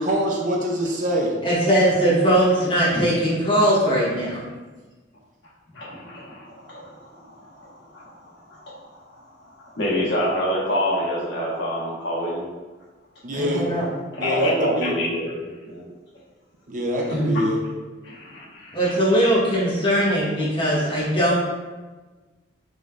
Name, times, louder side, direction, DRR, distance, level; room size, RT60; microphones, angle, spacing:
voice 1, 0.0-1.3 13.2-13.7 14.2-14.9 16.7-17.6, equal, 40° right, -1 dB, 0.5 m, -24 dB
voice 2, 1.4-4.4 13.3-13.9 17.1-17.4 18.7-21.4, equal, 25° left, -7 dB, 1.2 m, -20 dB
voice 3, 5.7-9.3 9.6-12.4 14.1-15.8 17.3-17.4 18.0-19.0, equal, 65° left, -6 dB, 1.3 m, -28 dB
5.2 x 3.3 x 2.4 m, 1.3 s
head